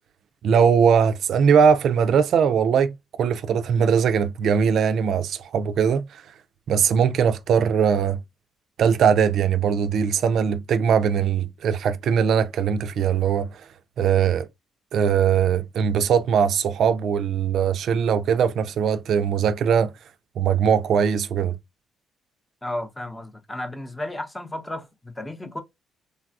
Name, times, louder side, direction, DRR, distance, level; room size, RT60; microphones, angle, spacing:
voice 1, 0.4-2.9 3.2-6.2 6.7-8.2 8.8-13.5 14.0-14.5 14.9-19.9 20.4-21.6, right 7 dB, 70° right, 0.3 m, -20 dB
voice 2, 22.6-25.6, left 1 dB, 15° left, 0.7 m, -33 dB
3.3 x 2.3 x 2.5 m
cardioid pair, 90°, 0 cm